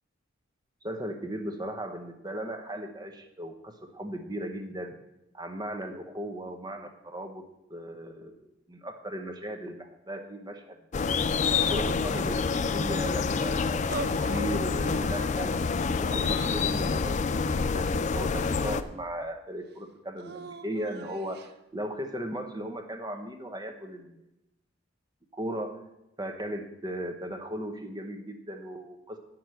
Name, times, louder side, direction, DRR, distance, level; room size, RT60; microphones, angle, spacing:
voice 1, 0.8-4.9 5.3-7.4 7.7-11.2 11.7-13.9 14.2-15.6 16.0-24.2 25.3-25.8 26.2-29.2, right 1 dB, 20° right, 6 dB, 0.9 m, -37 dB
sound 1, 10.9-18.8, left 5 dB, 35° left, 0.4 m, -27 dB
sound 2, 13.9-14.5 14.8-15.5 16.1-17.0 17.8-18.8 20.2-21.5, right 4 dB, 50° right, 0.6 m, -42 dB
8.3 x 6.2 x 7.6 m, 0.89 s
head